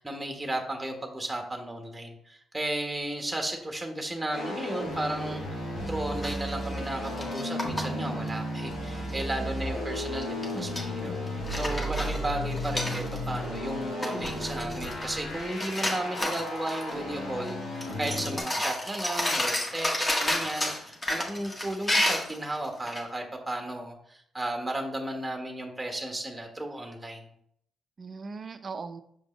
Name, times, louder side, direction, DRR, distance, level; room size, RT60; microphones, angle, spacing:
voice 1, 0.0-11.1 11.5-27.3, right 1 dB, 10° right, 3 dB, 1.3 m, -34 dB
sound 1, 4.3-18.4, equal, 80° left, 2.7 m, -34 dB
sound 2, 6.2-7.8 8.3-8.4 8.7-9.2 10.2-10.9 11.3-13.4 13.7-13.8 14.0-15.3 15.5-16.9 17.4-17.5 17.8-23.0, left 1 dB, 25° left, 1.7 m, -31 dB
voice 2, 9.1-9.6 11.8-12.1 28.0-29.0, right 4 dB, 45° right, 10 dB, 0.6 m, -40 dB
6.6 x 5.2 x 3.2 m, 0.70 s
supercardioid pair, 60°, 0 cm